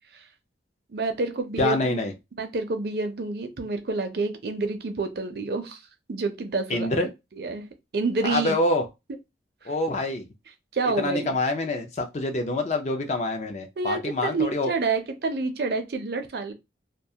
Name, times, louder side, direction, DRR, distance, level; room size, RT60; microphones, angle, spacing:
voice 1, 0.9-2.0 2.4-5.8 6.1-6.9 7.3-7.7 7.9-8.6 9.6-9.7 10.7-11.4 13.8-16.5, right 3 dB, 60° right, 0.4 m, -28 dB
voice 2, 1.6-2.1 6.7-7.1 8.2-8.8 9.7-10.2 11.0-14.7, left 2 dB, 40° left, 0.4 m, -26 dB
2.3 x 2.2 x 2.7 m
head